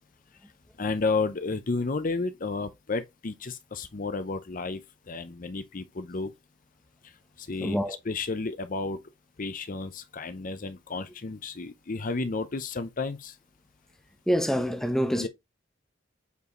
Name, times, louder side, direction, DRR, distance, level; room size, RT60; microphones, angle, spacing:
voice 1, 0.8-4.8 5.1-6.3 7.0-9.0 9.4-13.4 15.2-15.3, left 3 dB, 45° left, 0.6 m, -32 dB
voice 2, 7.6-8.0 14.3-15.3, equal, ahead, 0.9 m, -26 dB
8.1 x 4.7 x 3.1 m
head